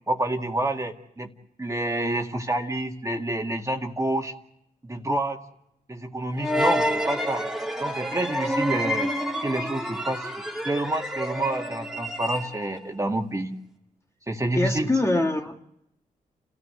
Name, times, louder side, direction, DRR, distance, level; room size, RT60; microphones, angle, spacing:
voice 1, 0.1-1.3 1.6-4.3 4.8-5.4 5.9-7.4 7.8-9.1 9.4-13.5 14.3-14.9, right 1 dB, 20° right, 3 dB, 2.1 m, -28 dB
sound 1, 6.4-12.8, equal, 5° right, 1.9 m, -28 dB
voice 2, 14.5-15.6, left 2 dB, 20° left, 3 dB, 1.9 m, -24 dB
30.0 x 14.0 x 8.0 m, 0.83 s
cardioid pair, 70°, 15 cm